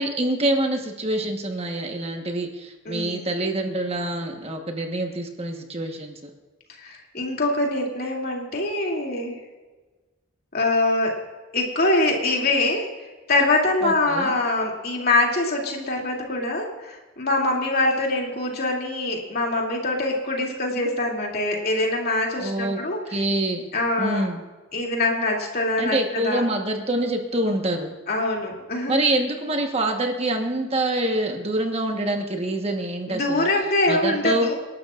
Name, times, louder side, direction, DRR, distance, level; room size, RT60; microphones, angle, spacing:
voice 1, 0.0-6.3 13.8-14.3 22.4-22.8 23.1-23.7 24.0-24.4 25.8-27.9 28.9-33.5 33.9-34.5, right 1 dB, 30° right, 3 dB, 1.3 m, -26 dB
voice 2, 2.8-3.3 6.8-9.4 10.5-11.2 11.5-12.9 13.3-23.2 23.7-24.3 24.7-26.4 28.1-29.0 33.1-34.5, left 2 dB, 50° left, -1 dB, 2.8 m, -24 dB
27.5 x 12.0 x 2.5 m, 1.3 s
head